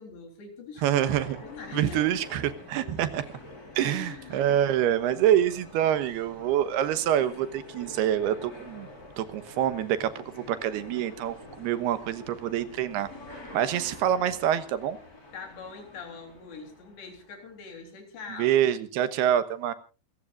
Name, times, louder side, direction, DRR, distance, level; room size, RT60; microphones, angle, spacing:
voice 1, 0.0-0.9 1.4-2.1 3.7-4.5 15.3-18.6, left 5 dB, 80° left, 5 dB, 5.7 m, -42 dB
voice 2, 0.8-1.4 1.7-3.2 3.8-8.9 9.2-13.1 13.5-15.0 18.4-19.7, right 11 dB, 75° right, 13 dB, 3.1 m, -26 dB
sound 1, 0.9-17.5, left 2 dB, 20° left, 4.3 m, -46 dB
27.5 x 15.0 x 2.5 m, 0.33 s
omnidirectional pair, 4.8 m